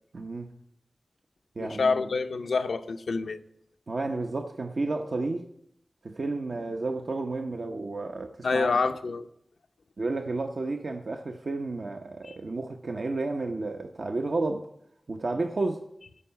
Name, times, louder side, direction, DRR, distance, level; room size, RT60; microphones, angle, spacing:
voice 1, 0.1-0.5 1.6-2.1 3.9-5.5 6.0-8.8 10.0-14.7 15.1-15.9, right 3 dB, 70° right, 0.8 m, -31 dB
voice 2, 1.6-3.4 8.4-9.3 12.2-12.4, left 4 dB, 90° left, 0.6 m, -27 dB
14.0 x 4.7 x 8.8 m
cardioid pair, 45°, 0 cm